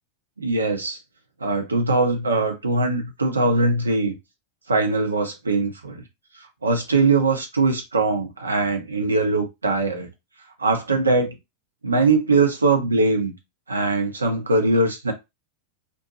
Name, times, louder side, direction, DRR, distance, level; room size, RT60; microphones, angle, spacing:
voice 1, 0.4-1.0 1.4-4.1 4.7-6.0 6.6-10.1 10.6-11.3 11.8-13.3 13.7-15.1, right 3 dB, 75° right, 0.7 m, -21 dB
2.6 x 2.2 x 2.8 m
figure-of-eight pair, 90°, 0 cm